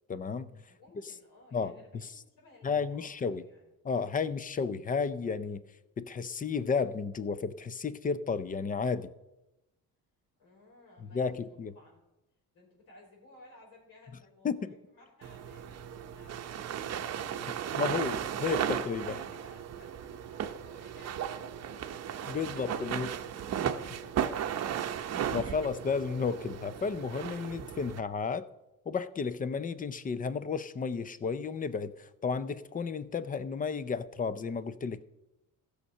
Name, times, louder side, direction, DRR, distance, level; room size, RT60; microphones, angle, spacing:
voice 1, 0.1-0.6 1.5-1.7 2.6-3.4 3.8-5.6 6.0-9.1 11.1-11.7 14.4-14.7 17.8-18.1 18.4-19.1 22.3-23.1 25.1-28.5 28.9-35.0, left 5 dB, 25° left, 15 dB, 0.5 m, -32 dB
voice 2, 0.7-3.7 10.4-12.1 12.5-17.3 17.6-18.1 18.7-21.9 22.5-24.7, left 2 dB, 80° left, -2 dB, 5.2 m, -58 dB
sound 1, 15.2-28.0, right 9 dB, 50° right, 0.8 m, -35 dB
15.5 x 6.6 x 5.5 m, 0.97 s
cardioid pair, 130°, 34 cm